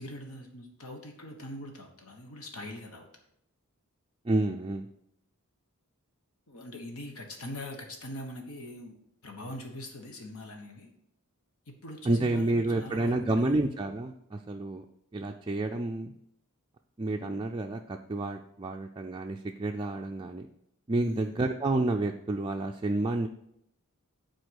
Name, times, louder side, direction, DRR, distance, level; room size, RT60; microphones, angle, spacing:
voice 1, 0.0-3.1 6.5-9.0 9.2-10.9 11.8-13.6 21.0-21.3, left 1 dB, 70° left, 3 dB, 1.2 m, -42 dB
voice 2, 4.2-4.9 12.0-14.8 15.1-16.1 17.0-20.5 20.9-23.3, right 2 dB, 20° right, 2 dB, 0.4 m, -29 dB
7.8 x 4.4 x 6.3 m, 0.77 s
head